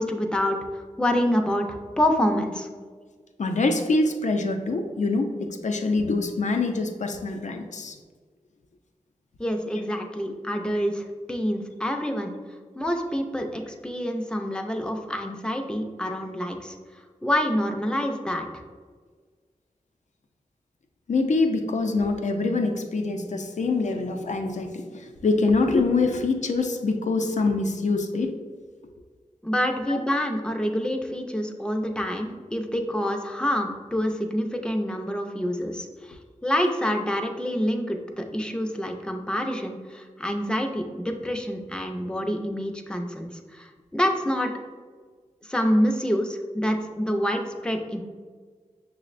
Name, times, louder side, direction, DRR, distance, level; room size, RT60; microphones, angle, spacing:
voice 1, 0.0-2.7 9.4-12.3 12.8-16.8 17.2-18.5 29.4-44.5 45.4-48.0, equal, 5° left, 3 dB, 0.5 m, -27 dB
voice 2, 3.4-8.0 21.1-28.3 29.9-30.0, left 3 dB, 65° left, 5 dB, 0.4 m, -25 dB
6.2 x 2.1 x 2.5 m, 1.5 s
cardioid pair, 40°, 13 cm